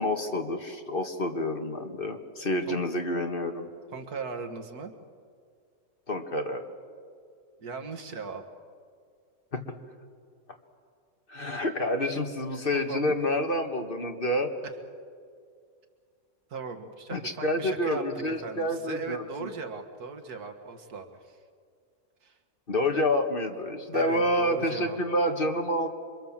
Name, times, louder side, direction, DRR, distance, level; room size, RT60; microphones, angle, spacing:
voice 1, 0.0-3.7 6.1-6.7 9.5-9.7 11.3-14.5 17.1-19.5 22.7-25.9, left 1 dB, 40° left, 5 dB, 1.7 m, -28 dB
voice 2, 3.9-4.9 7.6-8.4 12.9-13.2 16.5-21.4 22.2-22.4 23.9-25.0, right 4 dB, 85° right, 6 dB, 2.2 m, -38 dB
27.5 x 24.0 x 7.4 m, 2.2 s
omnidirectional pair, 1.6 m